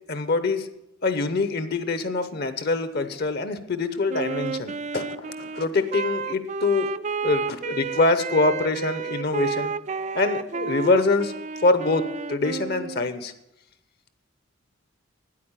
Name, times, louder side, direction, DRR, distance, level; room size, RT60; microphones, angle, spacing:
voice 1, 0.1-0.7 1.0-6.9 7.2-9.7 10.1-11.3 11.6-13.3, left 3 dB, 50° left, 11 dB, 0.8 m, -24 dB
Wind instrument woodwind instrument, 4.1-13.1, right 5 dB, 35° right, 0.3 m, -31 dB
9.4 x 8.5 x 8.9 m, 0.87 s
head